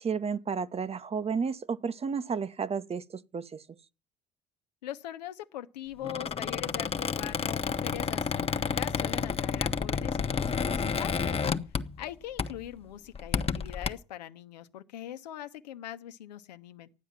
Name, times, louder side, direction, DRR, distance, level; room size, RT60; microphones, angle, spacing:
voice 1, 0.0-3.6, right 6 dB, 30° right, 0.9 m, -32 dB
voice 2, 4.8-11.4 12.0-16.9, left 12 dB, 90° left, 1.0 m, -42 dB
Squeak, 6.0-12.1 12.4-12.7 13.1-13.9, left 5 dB, 30° left, 1.1 m, -30 dB
14.0 x 9.5 x 7.3 m
hypercardioid pair, 75°, 21 cm